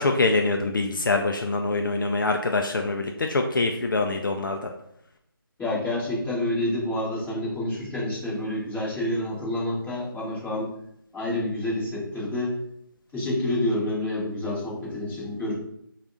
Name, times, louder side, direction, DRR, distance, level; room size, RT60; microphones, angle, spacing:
voice 1, 0.0-4.6, left 3 dB, 60° left, 4 dB, 0.4 m, -24 dB
voice 2, 5.6-10.7 11.1-12.5 13.1-15.5, left 1 dB, 5° left, -17 dB, 1.2 m, -28 dB
5.2 x 2.4 x 2.4 m, 0.74 s
figure-of-eight pair, 175°, 12 cm